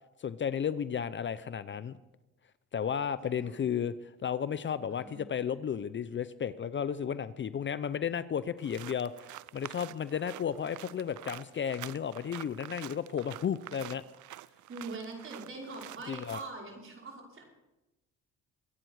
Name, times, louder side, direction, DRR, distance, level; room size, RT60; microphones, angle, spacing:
voice 1, 0.2-2.0 2.7-3.9 4.2-9.1 9.5-14.0 16.1-16.4, left 8 dB, 40° left, 15 dB, 0.6 m, -33 dB
voice 2, 3.2-3.7 4.9-5.2 14.7-17.4, right 3 dB, 45° right, -2 dB, 5.6 m, -43 dB
sound 1, 8.6-16.5, right 16 dB, 75° right, 0.5 m, -47 dB
24.0 x 9.1 x 4.8 m, 1.0 s
cardioid pair, 90°, 30 cm